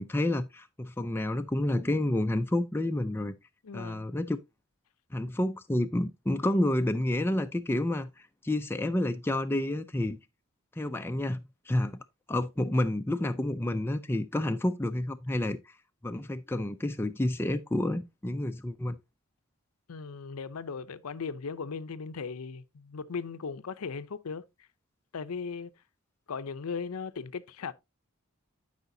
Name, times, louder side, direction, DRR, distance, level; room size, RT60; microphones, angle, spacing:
voice 1, 0.0-3.3 3.7-4.4 5.1-10.2 10.8-12.0 12.3-15.6 16.0-19.0, left 1 dB, 10° left, 0.3 m, -29 dB
voice 2, 3.6-4.1 19.9-24.4 25.1-25.7 26.3-27.7, left 5 dB, 80° left, 0.5 m, -37 dB
12.0 x 5.0 x 2.6 m
head